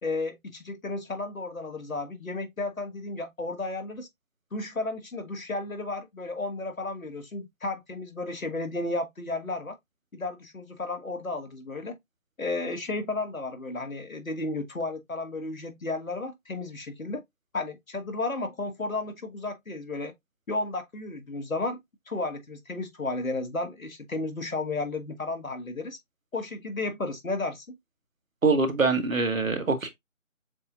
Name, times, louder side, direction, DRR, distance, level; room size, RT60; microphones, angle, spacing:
voice 1, 0.0-4.1 4.5-9.8 10.1-12.0 12.4-17.2 17.5-20.1 20.5-21.8 22.1-26.0 26.3-27.6, left 2 dB, 80° left, 1.7 m, -33 dB
voice 2, 28.4-29.9, right 4 dB, 75° right, 1.4 m, -24 dB
6.9 x 2.6 x 2.5 m
figure-of-eight pair, 160°, 40 cm